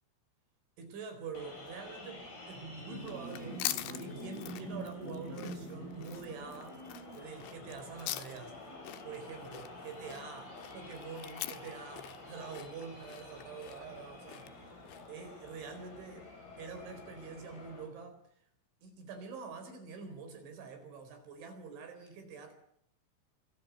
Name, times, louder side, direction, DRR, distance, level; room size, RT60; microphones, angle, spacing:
voice 1, 0.8-6.8 7.1-8.6 9.0-16.3 16.6-18.4 18.8-22.5, right 5 dB, 70° right, 6.5 m, -46 dB
sound 1, 1.4-17.9, equal, 50° left, 9.3 m, -47 dB
sound 2, 3.0-15.2, left 14 dB, 75° left, 3.6 m, -44 dB
28.0 x 23.0 x 8.0 m
omnidirectional pair, 5.7 m